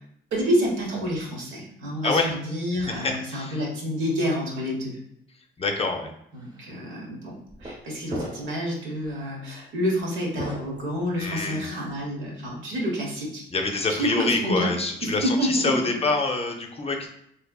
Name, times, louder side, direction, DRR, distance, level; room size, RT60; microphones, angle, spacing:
voice 1, 0.3-5.0 6.3-7.3 7.6-13.4 13.9-14.7 15.0-15.7, equal, 80° right, -3 dB, 1.2 m, -28 dB
voice 2, 2.0-2.3 2.8-3.6 5.6-6.1 11.2-11.7 13.5-17.1, left 3 dB, 30° left, 3 dB, 0.5 m, -26 dB
sound 1, 6.4-6.6 7.5-7.8 8.1-8.6 9.0-9.2 10.4-11.5, right 1 dB, 20° right, 0.8 m, -36 dB
3.4 x 3.1 x 2.3 m, 0.73 s
cardioid pair, 90°, 20 cm